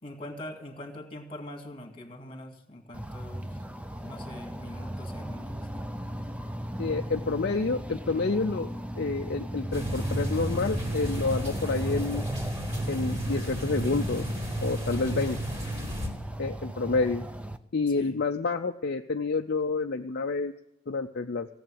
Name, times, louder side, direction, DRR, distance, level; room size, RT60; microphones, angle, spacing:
voice 1, 0.0-3.5 4.0-5.9 17.9-18.2, left 1 dB, 25° left, 4 dB, 2.0 m, -43 dB
sound 1, 2.9-17.6, right 1 dB, 5° right, 0.5 m, -35 dB
voice 2, 6.8-8.7 9.0-12.2 12.9-14.2 14.6-15.4 16.4-17.2 17.7-20.5 20.9-21.5, left 3 dB, 45° left, 4 dB, 0.5 m, -28 dB
sound 2, 9.7-16.1, equal, 30° right, 3.1 m, -34 dB
17.0 x 7.9 x 9.0 m, 0.80 s
head